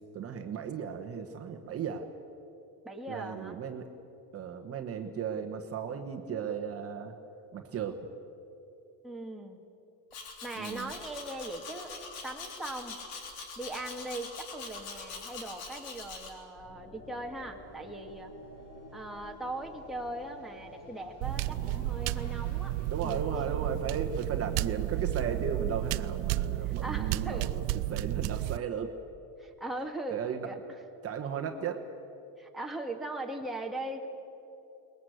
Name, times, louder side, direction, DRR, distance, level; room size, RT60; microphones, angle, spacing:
voice 1, 0.1-2.1 3.1-3.8 4.3-7.1 7.5-8.1 10.6-10.9 22.9-28.9 30.1-30.5 31.0-31.8, right 7 dB, 35° right, 5 dB, 1.3 m, -35 dB
voice 2, 2.8-3.6 9.0-9.6 10.4-11.9 12.2-13.0 13.6-18.3 18.9-22.7 23.0-23.3 26.7-27.5 29.4-30.8 32.4-34.1, right 2 dB, ahead, 0 dB, 1.9 m, -39 dB
Domestic sounds home sounds, 10.1-16.3, left 4 dB, 80° left, 3.7 m, -43 dB
sound 1, 16.5-24.7, left 1 dB, 40° left, 4.9 m, -51 dB
sound 2, 21.2-28.6, right 16 dB, 80° right, 0.6 m, -32 dB
22.0 x 20.5 x 8.0 m, 2.9 s
cardioid pair, 135°, 39 cm